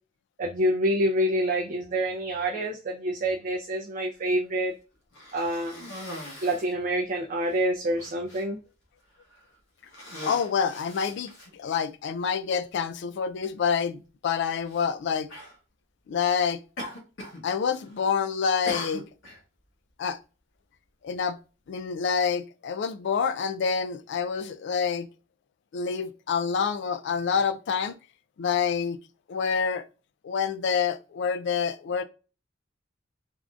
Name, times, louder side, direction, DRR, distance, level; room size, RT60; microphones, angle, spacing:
voice 1, 0.4-4.7 5.3-5.7 6.4-8.6, right 1 dB, 45° right, 0.4 m, -27 dB
Cough, 5.1-6.8 7.5-7.6 8.0-8.4 9.2-9.4 9.8-11.8 12.7-12.8 14.6-14.9 15.3-15.6 16.8-17.4 17.7-18.1 18.7-19.4, left 1 dB, 85° left, 0.9 m, -40 dB
voice 2, 10.2-15.3 16.1-16.6 17.4-19.0 20.0-20.2 21.0-21.4 21.7-25.1 25.7-27.9 28.4-29.0 29.3-29.8 30.2-32.0, left 6 dB, 65° left, 0.3 m, -27 dB
3.5 x 2.5 x 2.3 m
head